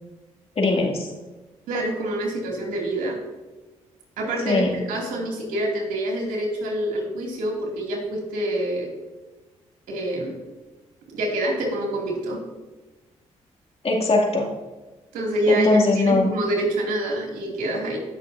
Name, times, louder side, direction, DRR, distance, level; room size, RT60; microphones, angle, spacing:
voice 1, 0.6-1.1 4.4-4.8 13.8-14.5 15.5-16.3, left 2 dB, 45° left, -1 dB, 2.5 m, -20 dB
voice 2, 1.7-3.2 4.2-8.9 9.9-10.3 11.1-12.4 15.1-18.0, right 1 dB, 80° right, 0 dB, 2.5 m, -26 dB
17.0 x 6.4 x 2.7 m, 1.2 s
supercardioid pair, 50°, 14 cm